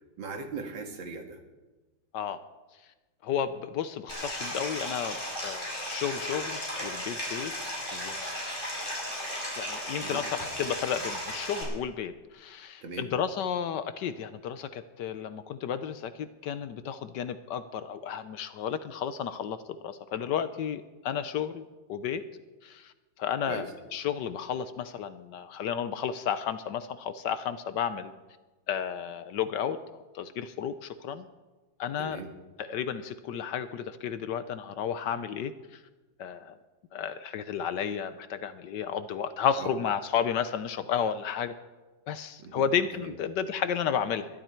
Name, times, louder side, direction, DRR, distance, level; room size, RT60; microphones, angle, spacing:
voice 1, 0.2-1.4 10.0-10.2 12.8-13.1 23.5-23.7 32.0-32.3 39.6-39.7 42.4-42.7 43.0-43.1, right 4 dB, 70° right, 4 dB, 2.4 m, -39 dB
voice 2, 3.2-5.2 5.4-7.5 7.9-8.4 9.6-21.6 21.9-22.2 22.6-22.9 23.2-28.1 28.7-29.8 30.1-31.3 31.8-32.2 32.6-35.5 36.2-36.6 36.9-41.5 42.1-44.3, left 8 dB, 70° left, 12 dB, 1.2 m, -32 dB
Stream, 4.1-11.6, equal, 25° left, 5.7 m, -35 dB
21.0 x 12.5 x 4.5 m, 1.2 s
omnidirectional pair, 2.1 m